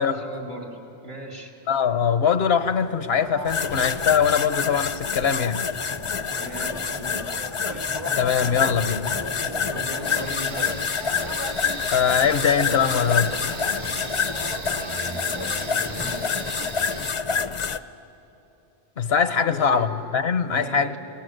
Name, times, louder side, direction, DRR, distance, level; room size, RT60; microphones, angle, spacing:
voice 1, 0.0-1.5 6.2-7.2 9.6-10.9 14.7-15.2 15.8-16.5 19.3-19.9 20.5-21.0, equal, 75° right, 2 dB, 3.4 m, -38 dB
voice 2, 1.7-5.7 8.2-9.1 11.9-13.4 19.0-21.0, left 7 dB, 80° left, 12 dB, 1.2 m, -22 dB
sound 1, 2.6-16.7, right 1 dB, 20° right, 0.6 m, -39 dB
sound 2, 3.5-17.8, left 6 dB, 40° left, 0.5 m, -27 dB
sound 3, 10.0-17.1, right 4 dB, 45° right, 0.9 m, -38 dB
29.5 x 19.0 x 8.0 m, 3.0 s
omnidirectional pair, 1.0 m